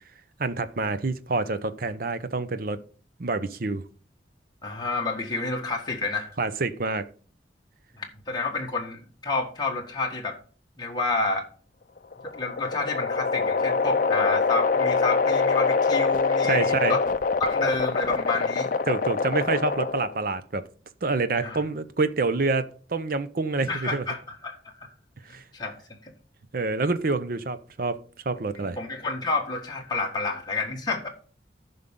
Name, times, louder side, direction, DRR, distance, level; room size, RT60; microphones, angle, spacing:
voice 1, 0.4-2.8 3.2-3.8 6.4-7.1 16.5-17.0 18.9-20.7 21.0-24.0 25.3-25.4 26.5-28.0 28.3-28.8, right 3 dB, 55° right, 0.7 m, -27 dB
voice 2, 4.6-6.3 8.0-10.4 10.8-11.5 12.3-17.0 17.4-18.7 21.4-21.6 23.7-24.6 25.5-25.8 26.0-26.1 28.6-31.1, left 3 dB, 25° left, 1.7 m, -29 dB
sound 1, 12.0-20.2, left 4 dB, 50° left, 0.5 m, -24 dB
14.5 x 5.5 x 3.7 m
head